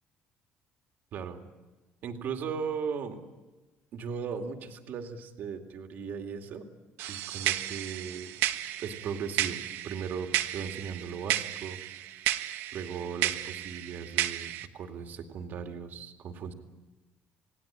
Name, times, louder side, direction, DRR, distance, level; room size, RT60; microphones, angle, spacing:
voice 1, 2.0-3.2 3.9-6.6 7.1-8.3 8.8-11.8 12.7-16.5, right 6 dB, 50° right, 4 dB, 2.4 m, -37 dB
sound 1, 7.0-14.7, right 13 dB, 90° right, 1.2 m, -33 dB
28.5 x 18.5 x 8.9 m, 1.2 s
cardioid pair, 160°, 4 cm